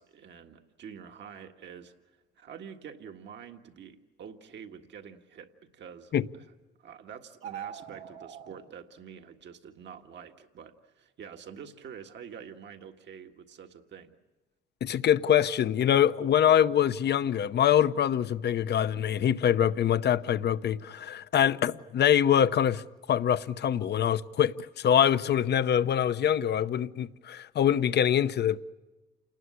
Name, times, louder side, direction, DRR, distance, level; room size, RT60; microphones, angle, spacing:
voice 1, 0.0-1.9 2.4-6.2 6.8-14.2, right 7 dB, 65° right, 1.8 m, -47 dB
sound 1, 7.3-8.5, right 9 dB, 85° right, 2.2 m, -41 dB
voice 2, 14.8-22.8 23.1-28.6, left 9 dB, 55° left, 0.8 m, -24 dB
28.5 x 19.5 x 9.7 m
cardioid pair, 90°, 20 cm